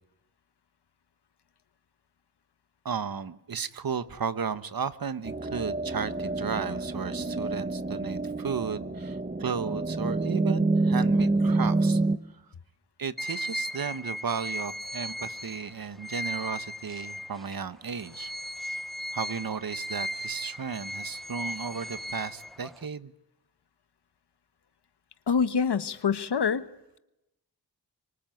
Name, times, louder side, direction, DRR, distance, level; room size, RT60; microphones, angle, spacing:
voice 1, 2.8-12.0 13.0-18.3 19.1-23.1, right 6 dB, 60° right, 13 dB, 1.3 m, -34 dB
sound 1, 5.3-12.2, right 2 dB, 20° right, 1.4 m, -27 dB
sound 2, 13.2-17.6 18.0-22.9, equal, ahead, 1.0 m, -37 dB
voice 2, 25.3-26.7, left 6 dB, 80° left, 13 dB, 1.4 m, -25 dB
25.0 x 24.0 x 9.3 m, 0.90 s
wide cardioid pair, 85°, 40 cm